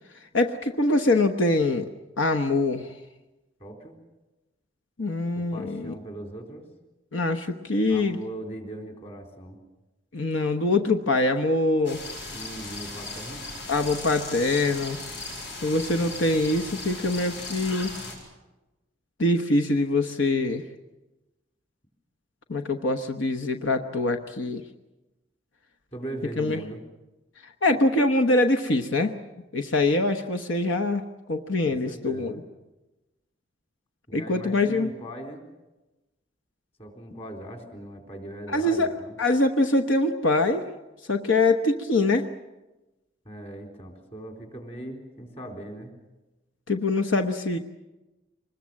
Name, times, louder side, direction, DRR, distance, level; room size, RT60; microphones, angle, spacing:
voice 1, 0.3-1.9 2.2-2.9 5.0-5.9 7.1-8.2 10.1-12.0 13.7-15.0 15.6-17.9 19.2-20.6 22.5-24.6 26.4-26.6 27.6-29.1 29.5-32.4 34.1-34.9 38.5-38.9 39.2-40.6 41.1-42.3 46.7-47.6, left 2 dB, 90° left, 7 dB, 1.1 m, -24 dB
voice 2, 3.6-4.0 5.4-6.7 7.9-9.6 12.3-13.4 25.9-26.8 31.7-32.4 34.1-35.4 36.8-39.2 43.3-46.0, right 1 dB, 35° left, 3 dB, 3.7 m, -39 dB
sound 1, 11.8-18.1, left 2 dB, 70° left, 7.5 m, -37 dB
24.5 x 21.0 x 7.6 m, 1.1 s
head